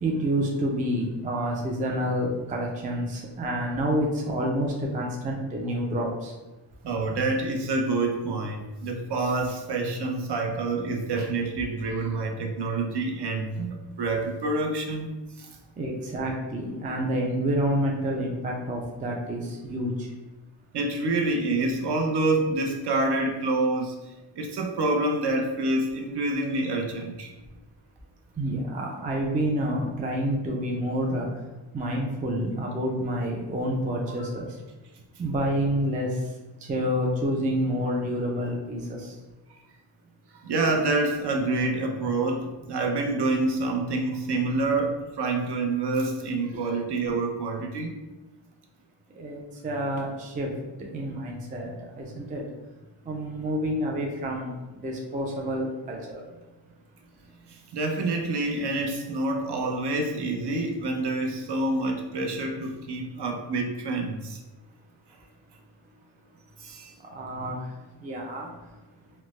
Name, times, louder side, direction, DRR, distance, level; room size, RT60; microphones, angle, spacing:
voice 1, 0.0-6.3 15.8-20.1 28.4-31.3 31.7-34.5 35.2-36.1 36.6-39.1 46.5-46.6 49.1-50.5 50.8-52.4 53.1-54.6 54.8-56.2 67.0-67.6 68.0-68.5, equal, 20° right, -1 dB, 0.3 m, -28 dB
voice 2, 6.8-15.6 20.7-27.4 40.3-48.0 57.5-64.4 66.6-66.9, right 2 dB, 60° right, 2 dB, 0.6 m, -27 dB
3.2 x 2.0 x 3.0 m, 1.1 s
wide cardioid pair, 125°, 45 cm